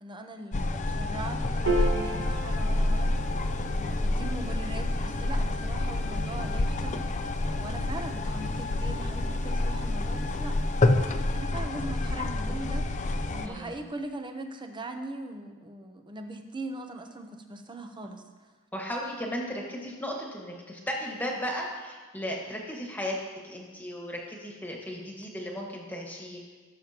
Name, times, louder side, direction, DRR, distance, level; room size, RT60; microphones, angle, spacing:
voice 1, 0.0-3.2 3.7-10.6 11.3-13.0 13.3-18.2, right 2 dB, 20° right, 5 dB, 0.8 m, -40 dB
sound 1, 0.5-13.5, left 2 dB, 35° left, 0.5 m, -28 dB
Piano, 1.7-8.3, right 2 dB, 60° right, 1.4 m, -37 dB
voice 2, 13.4-13.8 18.7-23.2 23.4-26.4, equal, 10° left, -2 dB, 1.6 m, -35 dB
17.5 x 7.1 x 2.9 m, 1.4 s
head